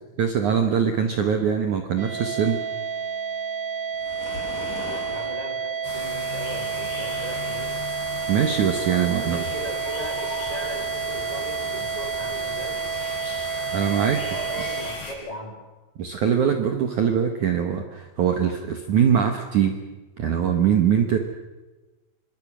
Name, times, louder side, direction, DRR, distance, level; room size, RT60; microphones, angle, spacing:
voice 1, 0.2-2.6 8.3-9.4 13.7-14.2 16.0-19.7 20.2-21.2, right 8 dB, 80° right, 5 dB, 1.7 m, -22 dB
sound 1, 2.0-14.8, right 6 dB, 50° right, 8.4 m, -30 dB
Waves surf, 3.9-5.4, left 4 dB, 45° left, 4.0 m, -37 dB
voice 2, 5.1-7.8 9.1-12.8 14.0-15.6, right 1 dB, 10° left, 1 dB, 2.9 m, -38 dB
sound 2, 5.8-15.1, left 3 dB, 70° left, 8.3 m, -37 dB
27.0 x 24.0 x 6.3 m, 1.2 s
omnidirectional pair, 5.8 m